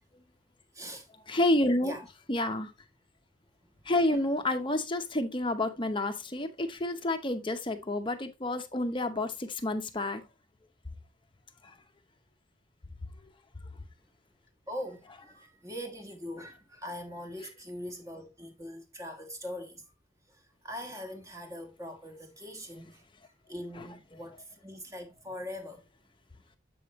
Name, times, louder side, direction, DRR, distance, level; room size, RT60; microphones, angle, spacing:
voice 1, 0.7-1.1 1.8-2.1 3.6-3.7 4.1-4.2 14.7-19.8 20.3-23.0 23.5-25.9, left 1 dB, 15° right, 1.4 m, -42 dB
voice 2, 1.3-2.0 2.3-2.7 3.9-10.2 11.6-11.7 23.8-23.9, left 1 dB, 25° left, 0.7 m, -29 dB
7.8 x 5.6 x 3.0 m
head